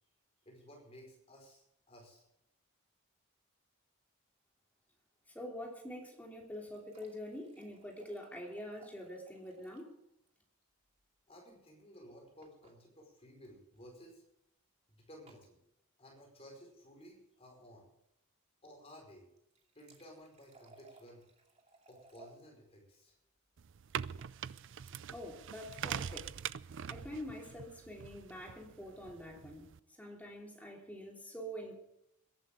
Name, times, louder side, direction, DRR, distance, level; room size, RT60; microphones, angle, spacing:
voice 1, 0.4-2.3 11.3-14.2 14.9-15.6 16.0-17.9 18.6-19.3 19.7-21.2 21.9-23.2, equal, 30° left, 0 dB, 4.8 m, -56 dB
voice 2, 5.3-10.0 25.1-26.3 26.9-29.7 30.0-31.7, equal, 5° left, -1 dB, 3.2 m, -46 dB
sound 1, 6.3-10.0 10.3-10.4 10.6-10.7 12.4-12.8 13.7-13.9 15.3-15.5 19.3-22.4 23.9-24.4, right 3 dB, 30° right, 2.6 m, -63 dB
sound 2, 23.6-29.8, right 8 dB, 60° right, 0.4 m, -43 dB
22.0 x 12.0 x 3.7 m, 0.79 s
head